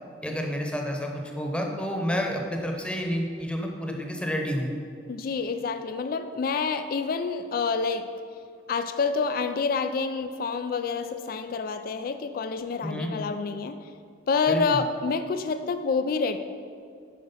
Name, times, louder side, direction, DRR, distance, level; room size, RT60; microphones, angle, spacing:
voice 1, 0.2-4.7 12.8-13.1 14.5-14.8, equal, 5° left, 1 dB, 0.9 m, -29 dB
voice 2, 5.1-8.1 8.7-13.8 14.3-16.4, left 4 dB, 55° left, 10 dB, 0.3 m, -28 dB
9.3 x 4.8 x 5.6 m, 2.3 s
head